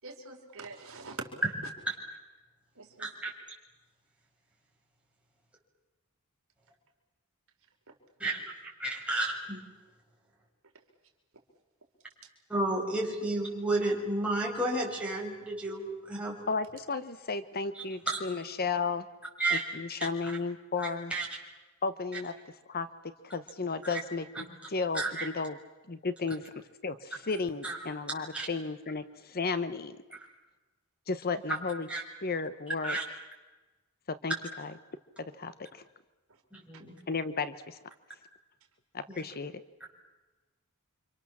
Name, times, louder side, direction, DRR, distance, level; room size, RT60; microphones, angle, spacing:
voice 1, 0.0-1.3 2.7-3.1 36.3-36.4, right 3 dB, 65° right, 2 dB, 4.6 m, -44 dB
voice 2, 3.0-3.3 8.2-8.4 8.8-9.6 12.5-16.4 18.1-18.2 19.4-19.6 20.0-20.3 20.8-21.3 24.9-25.3 27.6-27.8 28.3-28.5 31.9-32.0 32.8-33.0 36.5-36.9 39.1-39.2, right 2 dB, 5° right, -3 dB, 7.1 m, -32 dB
voice 3, 16.5-19.0 19.5-21.1 21.8-22.3 22.7-22.9 23.2-25.6 25.9-30.0 31.1-31.9 32.2-33.0 34.1-34.7 35.4-35.8 37.1-37.8 38.9-39.5, left 4 dB, 45° left, 13 dB, 1.0 m, -34 dB
29.5 x 26.0 x 7.4 m, 1.2 s
head